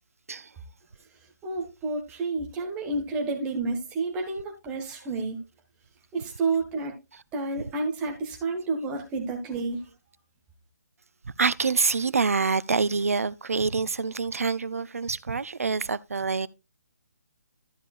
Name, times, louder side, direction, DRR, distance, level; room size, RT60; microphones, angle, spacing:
voice 1, 1.4-5.4 6.1-6.9 7.3-9.8, right 3 dB, 10° right, 1.4 m, -30 dB
voice 2, 11.2-16.5, right 4 dB, 55° right, 0.5 m, -26 dB
12.5 x 7.4 x 2.4 m
figure-of-eight pair, 145°, 9 cm